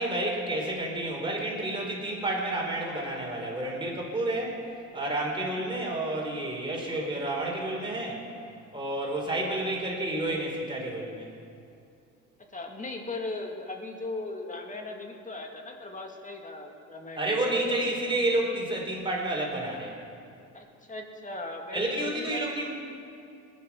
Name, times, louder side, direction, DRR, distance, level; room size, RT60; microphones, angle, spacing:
voice 1, 0.0-4.6 4.9-8.2 8.7-11.3 17.2-19.9 21.7-22.7, right 1 dB, 15° right, -2 dB, 4.6 m, -30 dB
voice 2, 12.5-17.7 20.5-22.5, left 2 dB, 25° left, 2 dB, 2.2 m, -38 dB
20.0 x 10.0 x 6.2 m, 2.5 s
cardioid pair, 90°, 30 cm